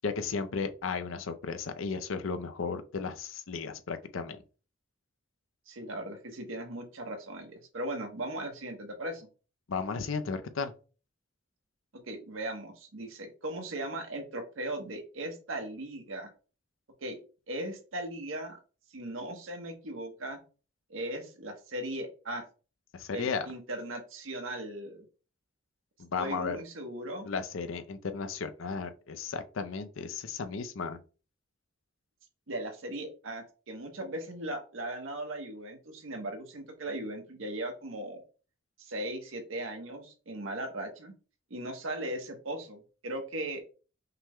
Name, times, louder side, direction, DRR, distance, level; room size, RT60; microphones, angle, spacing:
voice 1, 0.0-4.4 9.7-10.7 22.9-23.5 26.0-26.6 27.2-31.0, left 5 dB, 80° left, 0.5 m, -34 dB
voice 2, 5.7-9.3 12.0-16.3 17.0-17.2 17.5-18.6 18.9-20.4 20.9-22.4 23.1-25.0 26.2-27.3 32.5-38.2 38.8-41.1 41.5-43.6, right 1 dB, 80° right, 1.1 m, -38 dB
5.6 x 2.2 x 3.6 m
head